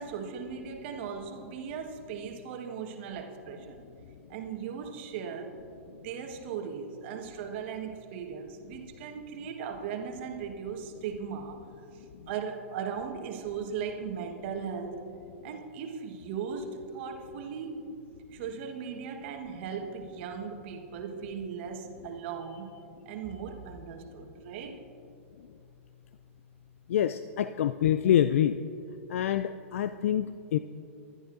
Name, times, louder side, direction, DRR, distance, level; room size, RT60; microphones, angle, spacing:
voice 1, 0.0-3.9 4.3-5.6 5.9-11.6 11.9-15.1 15.4-17.9 18.3-22.8 23.0-24.8, right 6 dB, 55° right, 5 dB, 1.4 m, -38 dB
voice 2, 26.9-28.5 29.1-30.6, left 10 dB, 70° left, 12 dB, 0.3 m, -26 dB
22.0 x 11.5 x 2.6 m, 2.6 s
hypercardioid pair, 115°, 8 cm